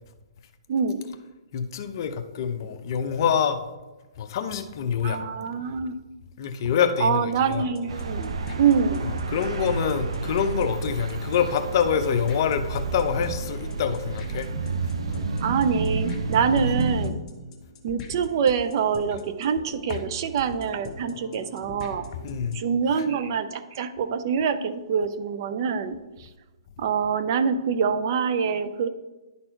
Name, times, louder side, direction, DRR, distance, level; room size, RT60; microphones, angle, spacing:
voice 1, 0.7-1.0 5.0-5.9 7.0-9.1 15.4-17.2 17.8-22.1 22.5-26.3 26.8-28.9, right 6 dB, 45° right, 11 dB, 0.5 m, -25 dB
voice 2, 1.5-3.6 4.2-5.2 6.4-7.7 9.0-14.5 22.2-22.6, left 7 dB, 45° left, 8 dB, 0.7 m, -26 dB
sound 1, 7.5-22.7, left 3 dB, 20° left, 0.9 m, -42 dB
sound 2, 7.9-17.1, right 4 dB, 80° right, 0.7 m, -30 dB
11.0 x 4.3 x 4.5 m, 1.1 s
hypercardioid pair, 155°, 3 cm